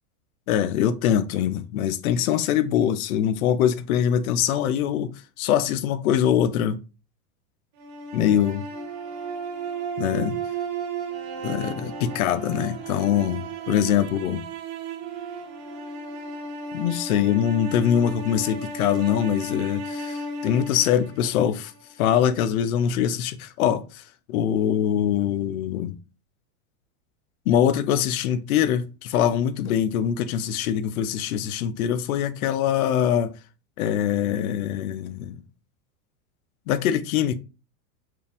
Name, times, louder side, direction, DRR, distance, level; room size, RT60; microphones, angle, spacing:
voice 1, 0.5-6.8 8.1-8.6 10.0-10.4 11.4-14.4 16.7-21.7 22.0-24.0 24.3-25.9 27.5-33.3 33.8-35.4 36.7-37.3, left 9 dB, 70° left, 0.7 m, -23 dB
sound 1, 7.8-21.9, right 3 dB, 45° right, 0.9 m, -34 dB
4.6 x 2.5 x 3.5 m
supercardioid pair, 145°, 44 cm